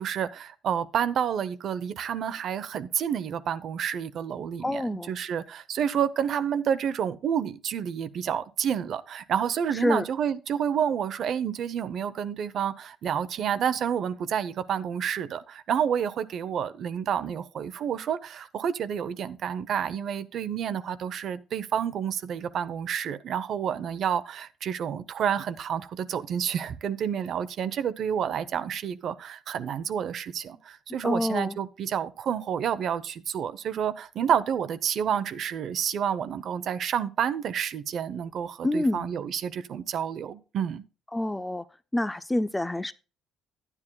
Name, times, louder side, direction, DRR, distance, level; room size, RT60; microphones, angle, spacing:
voice 1, 0.0-40.8, right 8 dB, 45° right, 0.7 m, -29 dB
voice 2, 4.6-5.1 9.7-10.1 31.0-31.6 38.6-39.1 41.1-41.6 41.9-42.9, left 1 dB, 10° left, 0.3 m, -27 dB
12.0 x 9.9 x 2.3 m
cardioid pair, 165°, 0 cm